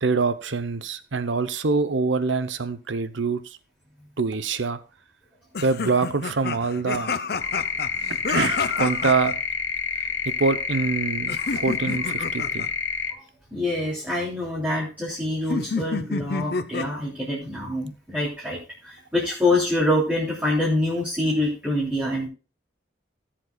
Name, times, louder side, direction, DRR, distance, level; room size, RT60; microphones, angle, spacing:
voice 1, 0.0-3.4 4.2-4.8 5.6-7.1 8.3-9.3 10.4-12.7, right 4 dB, 85° right, 13 dB, 0.8 m, -25 dB
sound 1, 5.5-9.3 11.3-12.7 15.5-17.0, left 4 dB, 55° left, 0.6 m, -29 dB
sound 2, 7.4-13.1, left 6 dB, 80° left, 1.0 m, -28 dB
voice 2, 13.5-18.6 18.8-22.3, left 1 dB, 10° right, -7 dB, 3.2 m, -25 dB
18.0 x 7.6 x 2.3 m, 0.33 s
head